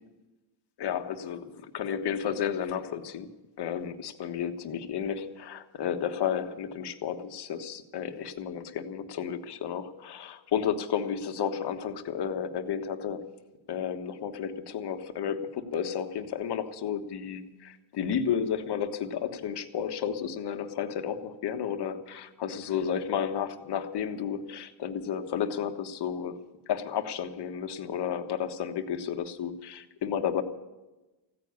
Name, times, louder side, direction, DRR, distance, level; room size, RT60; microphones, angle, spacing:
voice 1, 0.8-3.3 3.6-13.2 13.7-26.4 26.7-30.4, left 8 dB, 60° left, 7 dB, 1.4 m, -32 dB
15.0 x 9.6 x 9.6 m, 1.1 s
cardioid pair, 115°, 46 cm